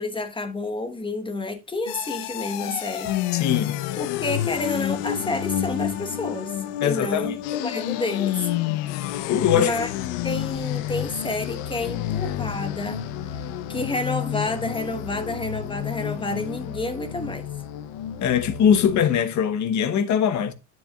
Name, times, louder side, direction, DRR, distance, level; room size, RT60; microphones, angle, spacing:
voice 1, 0.0-3.1 3.4-3.5 4.0-7.4 7.6-8.5 9.5-9.9 10.2-13.1 13.7-17.4, left 2 dB, 10° left, 1.1 m, -29 dB
sound 1, 1.9-19.1, left 12 dB, 65° left, 0.9 m, -29 dB
voice 2, 3.3-3.8 6.8-7.3 9.3-9.8 18.2-20.5, left 8 dB, 40° left, 1.1 m, -21 dB
10.0 x 7.8 x 2.3 m
cardioid pair, 145°, 45 cm